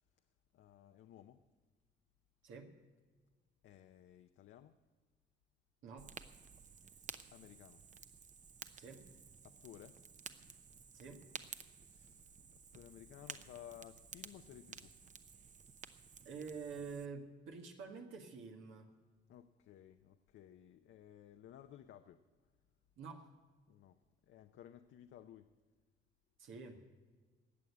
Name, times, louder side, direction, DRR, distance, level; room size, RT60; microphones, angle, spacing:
voice 1, 0.5-1.4 3.6-4.8 7.3-7.8 9.4-10.0 10.4-10.6 11.6-12.4 12.7-14.9 19.3-22.2 23.7-24.0 24.2-25.5, left 11 dB, 75° left, 7 dB, 0.7 m, -57 dB
voice 2, 5.8-6.1 8.8-9.0 10.9-11.2 16.3-18.9 23.0-23.3 26.4-26.8, right 5 dB, 80° right, 3 dB, 1.8 m, -48 dB
Fire, 6.0-17.1, right 6 dB, 40° right, 0.8 m, -54 dB
18.0 x 6.6 x 8.5 m, 1.4 s
cardioid pair, 90°, 20 cm